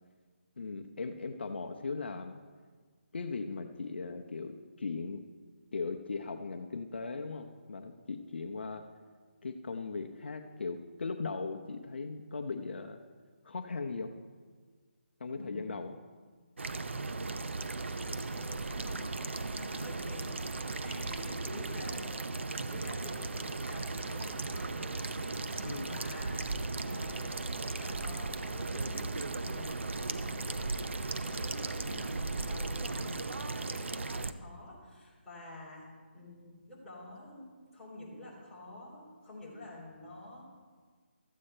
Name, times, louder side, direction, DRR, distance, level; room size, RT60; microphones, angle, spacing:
voice 1, 0.6-2.4 3.1-5.2 5.7-8.8 9.4-13.0 13.4-14.1 15.2-16.0 25.6-26.0, left 4 dB, 65° left, 5 dB, 0.7 m, -38 dB
voice 2, 15.4-15.9 18.0-35.9 36.1-40.4, left 2 dB, 5° left, -10 dB, 3.0 m, -49 dB
sound 1, 16.6-34.3, right 3 dB, 80° right, 0.7 m, -36 dB
13.5 x 8.4 x 4.4 m, 1.5 s
hypercardioid pair, 165°, 6 cm